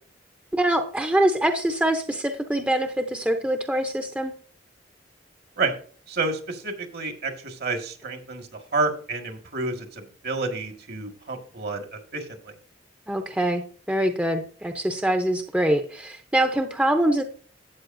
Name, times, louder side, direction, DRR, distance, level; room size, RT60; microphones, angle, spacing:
voice 1, 0.5-4.3 13.1-13.6 13.9-17.2, right 1 dB, 5° right, 6 dB, 0.6 m, -24 dB
voice 2, 6.1-12.3, right 3 dB, 60° right, 5 dB, 1.8 m, -29 dB
12.5 x 8.3 x 2.6 m, 0.43 s
head